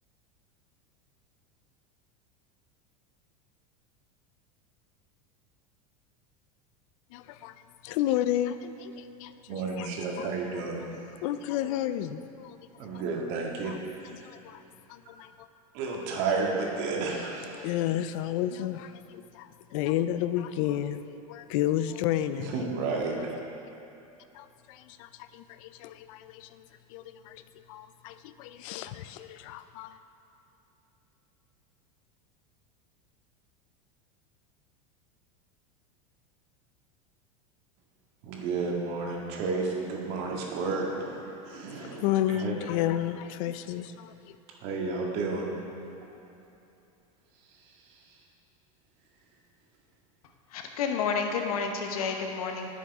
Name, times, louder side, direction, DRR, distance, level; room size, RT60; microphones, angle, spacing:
voice 1, 7.1-7.5 7.8-10.3 11.2-12.6 12.9-13.0 13.6-13.8 14.0-14.6 14.9-15.3 17.5-22.6 24.3-27.4 27.7-30.0 41.8-44.1, left 12 dB, 65° left, 12 dB, 0.5 m, -32 dB
voice 2, 9.5-10.8 12.8-13.7 15.7-17.7 22.5-23.1 38.2-41.2 41.5-42.5 44.6-45.5, right 4 dB, 60° right, -2 dB, 1.9 m, -31 dB
voice 3, 50.5-52.7, left 5 dB, 85° left, 3 dB, 1.1 m, -30 dB
11.0 x 6.4 x 4.7 m, 2.8 s
supercardioid pair, 110°, 18 cm